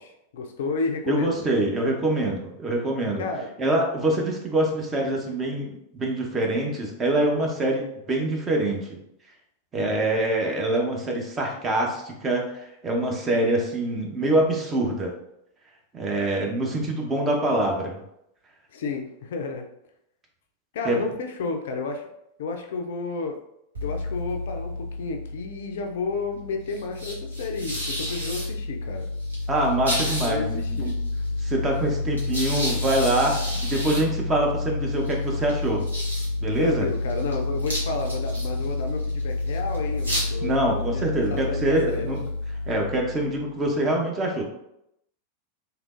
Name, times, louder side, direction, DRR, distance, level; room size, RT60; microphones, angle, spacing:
voice 1, 0.0-1.5 3.2-3.5 9.7-10.1 18.7-19.7 20.7-22.1 22.4-23.4 23.8-29.1 30.0-31.0 36.6-42.2, left 4 dB, 60° left, 4 dB, 0.4 m, -32 dB
voice 2, 1.1-3.2 3.6-9.0 9.7-15.1 15.9-18.0 20.8-21.0 29.5-30.9 31.4-35.8 36.4-36.9 40.4-42.2 42.7-44.4, right 1 dB, 20° right, 0 dB, 0.8 m, -25 dB
sound 1, 23.7-43.6, left 2 dB, 75° right, 1.1 m, -29 dB
3.6 x 2.9 x 2.5 m, 0.79 s
figure-of-eight pair, 90°, 0 cm